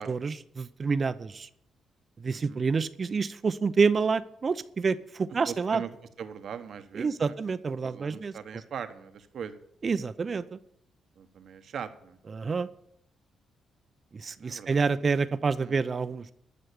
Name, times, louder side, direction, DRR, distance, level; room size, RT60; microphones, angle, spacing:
voice 1, 0.0-1.5 2.2-5.8 7.0-8.3 9.8-10.6 12.3-12.7 14.1-16.3, right 5 dB, 40° right, 14 dB, 0.7 m, -28 dB
voice 2, 2.3-2.7 5.4-5.9 6.2-7.4 7.8-9.6 11.2-12.2 14.4-14.8 15.6-15.8, right 7 dB, 65° right, 10 dB, 1.1 m, -40 dB
12.0 x 6.3 x 8.5 m, 0.75 s
cardioid pair, 75°, 0 cm